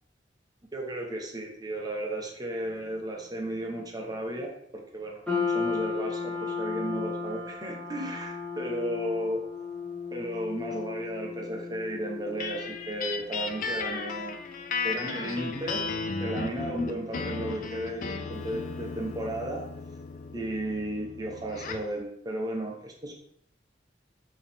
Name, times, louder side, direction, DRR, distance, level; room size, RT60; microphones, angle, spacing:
voice 1, 0.7-9.4 10.1-14.4 14.8-15.9 16.2-19.7 20.3-23.1, right 1 dB, 20° right, 0 dB, 0.8 m, -34 dB
sound 1, 5.3-19.7, left 5 dB, 5° left, 1.0 m, -36 dB
sound 2, 12.4-21.9, left 4 dB, 50° left, 0.4 m, -35 dB
4.6 x 2.9 x 3.5 m, 0.69 s
head